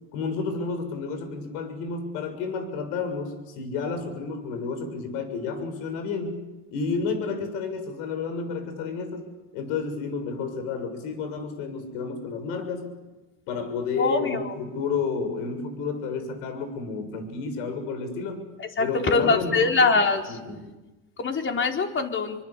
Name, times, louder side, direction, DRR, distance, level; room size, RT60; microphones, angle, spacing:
voice 1, 0.1-6.3 6.7-9.3 9.5-12.9 13.5-18.4 18.8-19.9 20.3-20.7, left 4 dB, 75° left, 8 dB, 6.9 m, -31 dB
voice 2, 14.0-14.5 18.8-20.2 21.2-22.4, left 4 dB, 35° left, 3 dB, 4.7 m, -23 dB
28.5 x 24.5 x 8.5 m, 1.1 s
supercardioid pair, 95°, 36 cm